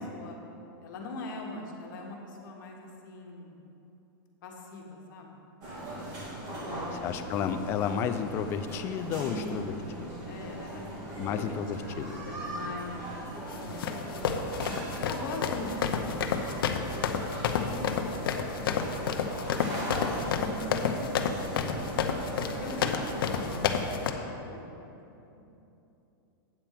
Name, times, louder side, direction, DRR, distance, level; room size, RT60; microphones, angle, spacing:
voice 1, 0.8-3.6 4.4-6.1 6.4-7.1 9.2-9.6 9.9-10.9 11.2-11.5 11.9-14.3 15.0-17.2 17.5-21.7 22.4-23.6 24.0-25.5, left 2 dB, 60° left, 0 dB, 1.4 m, -43 dB
sound 1, 5.6-23.6, right 1 dB, 30° right, 2.0 m, -39 dB
voice 2, 7.0-9.7 10.0-10.1 11.2-12.2, left 8 dB, 20° left, 8 dB, 0.3 m, -32 dB
sound 2, 13.5-24.1, left 7 dB, 75° left, 0.7 m, -30 dB
8.7 x 4.4 x 7.4 m, 2.9 s
supercardioid pair, 165°, 12 cm